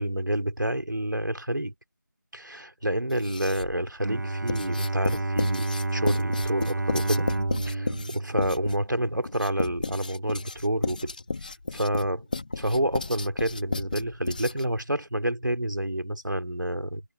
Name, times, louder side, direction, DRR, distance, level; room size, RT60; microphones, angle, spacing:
voice 1, 0.0-1.7 2.3-7.3 7.7-11.1 11.7-12.2 12.5-17.0, right 1 dB, 85° right, 3.2 m, -28 dB
Writing, 3.1-3.8 4.5-14.8, left 3 dB, 25° left, 1.5 m, -33 dB
Bowed string instrument, 4.0-9.3, right 2 dB, 65° right, 0.6 m, -30 dB
figure-of-eight pair, 170°, 10 cm